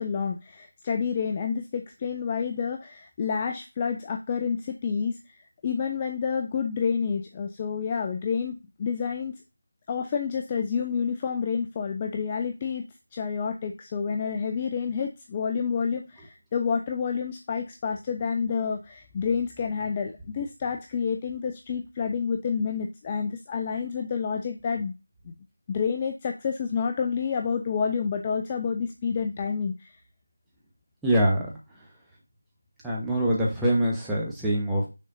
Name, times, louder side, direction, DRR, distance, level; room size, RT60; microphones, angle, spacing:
voice 1, 0.0-9.4 9.9-12.8 13.1-24.9 25.2-25.3 25.7-29.9, left 6 dB, 20° left, 4 dB, 0.4 m, -29 dB
voice 2, 31.0-31.5 32.8-34.9, right 1 dB, 5° right, -6 dB, 1.1 m, -24 dB
6.3 x 4.2 x 3.8 m, 0.27 s
figure-of-eight pair, 170°, 0 cm